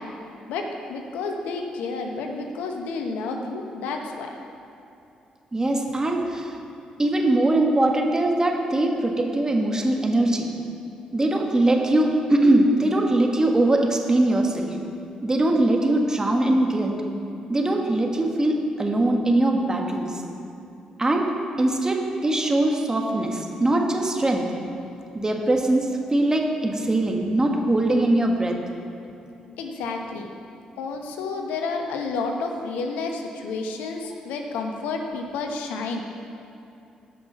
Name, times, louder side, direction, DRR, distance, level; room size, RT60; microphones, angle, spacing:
voice 1, 0.5-4.3 29.6-30.3 30.8-36.0, left 4 dB, 80° left, 3 dB, 1.0 m, -30 dB
voice 2, 5.5-6.5 7.0-10.5 11.1-14.8 15.2-17.0 17.5-20.2 21.0-21.3 21.6-24.5 25.1-28.6, right 1 dB, 25° right, 1 dB, 1.8 m, -21 dB
14.0 x 5.8 x 5.5 m, 2.7 s
hypercardioid pair, 50°, 3 cm